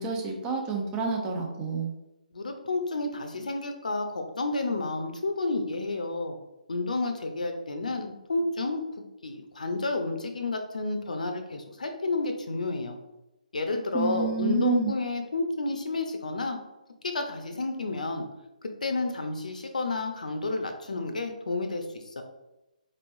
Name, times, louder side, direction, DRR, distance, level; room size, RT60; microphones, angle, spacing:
voice 1, 0.0-1.9 13.9-14.9, right 4 dB, 15° right, 0 dB, 0.6 m, -28 dB
voice 2, 2.3-6.3 6.7-13.0 13.5-16.6 17.0-18.2 18.6-22.2, left 3 dB, 65° left, 5 dB, 0.7 m, -31 dB
4.4 x 3.1 x 2.6 m, 0.97 s
figure-of-eight pair, 140°, 4 cm